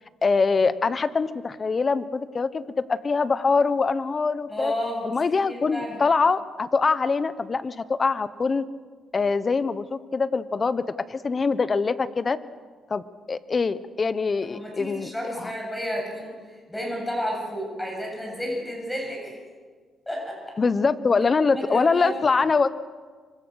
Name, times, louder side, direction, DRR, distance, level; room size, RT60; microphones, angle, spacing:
voice 1, 0.2-4.7 5.0-8.6 9.1-10.8 11.1-12.4 12.9-13.0 13.3-15.5 20.6-22.7, left 4 dB, 35° left, 14 dB, 1.1 m, -23 dB
voice 2, 4.5-6.0 14.4-19.4 20.1-20.5 21.5-22.1, equal, 10° left, -1 dB, 7.7 m, -32 dB
25.5 x 24.0 x 6.5 m, 1.5 s
cardioid pair, 105°, 0 cm